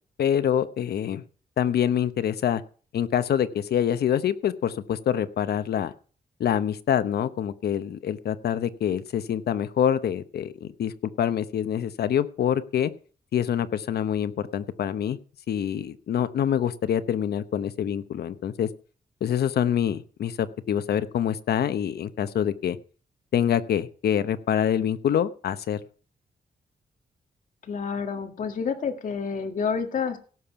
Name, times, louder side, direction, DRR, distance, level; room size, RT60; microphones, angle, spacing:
voice 1, 0.2-1.2 1.6-2.6 2.9-5.9 6.4-12.9 13.3-15.2 15.5-18.7 19.2-22.8 23.3-25.8, left 9 dB, 80° left, 13 dB, 1.0 m, -26 dB
voice 2, 27.6-30.2, left 6 dB, 55° left, 5 dB, 1.9 m, -29 dB
17.0 x 6.9 x 5.9 m, 0.40 s
wide cardioid pair, 170°, 16 cm